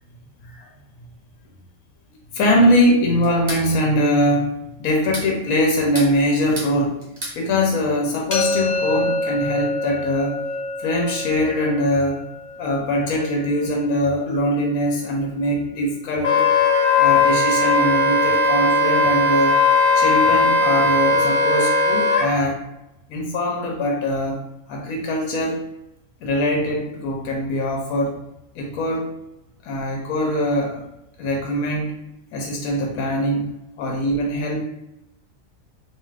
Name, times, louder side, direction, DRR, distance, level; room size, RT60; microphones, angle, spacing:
voice 1, 2.3-4.5 4.8-7.0 7.3-10.4 10.8-12.3 12.6-16.5 17.0-19.6 19.9-22.6 23.1-25.6 26.2-28.2 28.5-29.1 29.6-30.8 31.2-31.9 32.3-33.5 33.8-34.7, left 1 dB, 85° left, 0 dB, 1.0 m, -22 dB
sound 1, 3.2-3.7 4.9-5.3 5.8-6.7 7.0-7.4, right 1 dB, 35° right, 0.9 m, -32 dB
sound 2, 8.3-14.1, left 2 dB, 30° left, 0.6 m, -27 dB
Wind instrument woodwind instrument, 16.2-22.3, left 3 dB, 65° left, 0.8 m, -17 dB
2.6 x 2.3 x 3.2 m, 0.87 s
omnidirectional pair, 1.4 m